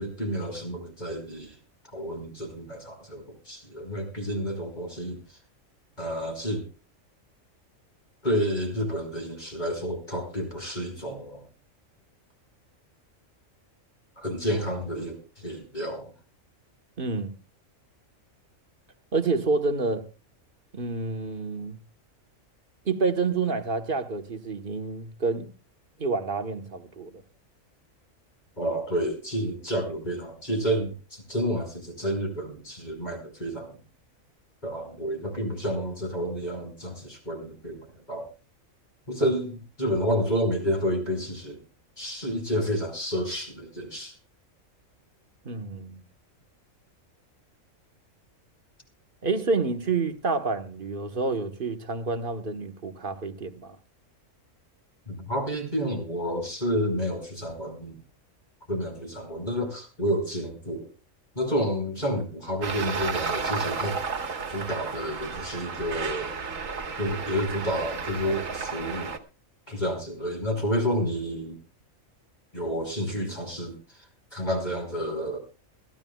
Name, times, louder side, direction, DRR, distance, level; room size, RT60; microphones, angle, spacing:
voice 1, 0.0-1.6 1.9-5.2 6.0-6.6 8.2-11.4 14.2-16.1 28.6-33.8 34.6-38.3 39.1-41.6 42.0-44.1 55.1-58.0 58.7-60.9 61.4-64.0 64.5-66.3 67.0-69.1 69.7-71.6 72.5-73.8 74.3-75.4, equal, 35° left, 5.2 m, -30 dB
voice 2, 17.0-17.3 19.1-20.1 20.7-21.8 22.8-25.5 26.0-27.2 45.4-46.0 49.2-53.8, right 4 dB, 40° right, 1.4 m, -28 dB
Traffic noise roadway noise, 62.6-69.2, right 5 dB, 75° right, 1.9 m, -32 dB
22.0 x 15.0 x 2.3 m
omnidirectional pair, 1.4 m